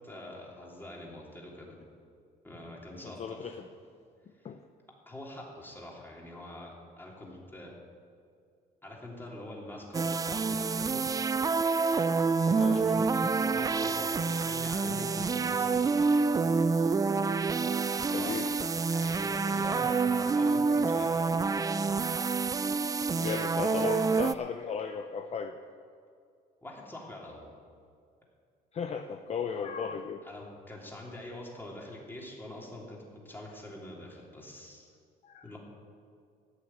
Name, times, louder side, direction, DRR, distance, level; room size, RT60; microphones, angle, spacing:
voice 1, 0.0-1.7 2.4-3.5 4.4-4.5 5.0-7.7 8.8-11.0 12.4-16.1 18.0-18.5 18.9-21.3 26.6-27.5 30.2-33.0 33.2-35.0 35.4-35.6, left 1 dB, 10° left, -2 dB, 3.3 m, -45 dB
voice 2, 3.0-3.7 4.4-4.6 12.5-12.8 18.1-18.5 19.4-19.6 23.2-25.5 28.7-30.2 35.2-35.5, left 6 dB, 40° left, 7 dB, 0.7 m, -36 dB
sound 1, 9.9-24.3, right 4 dB, 20° right, 0.4 m, -27 dB
14.0 x 6.7 x 9.4 m, 2.3 s
cardioid pair, 110°, 17 cm